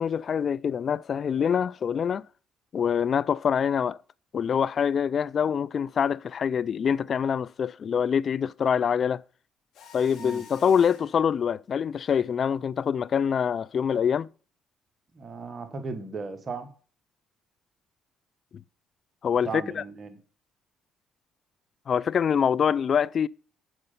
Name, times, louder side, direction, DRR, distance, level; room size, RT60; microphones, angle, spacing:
voice 1, 0.0-2.2 2.7-4.0 4.3-9.2 9.9-14.3 19.2-19.8 21.9-23.3, left 7 dB, 50° left, 0.3 m, -25 dB
Mechanisms, 9.7-11.2, left 4 dB, 70° left, 2.0 m, -46 dB
voice 2, 15.1-16.7 19.4-20.2, right 4 dB, 40° right, 1.5 m, -36 dB
7.8 x 6.5 x 5.6 m
supercardioid pair, 60°, 0 cm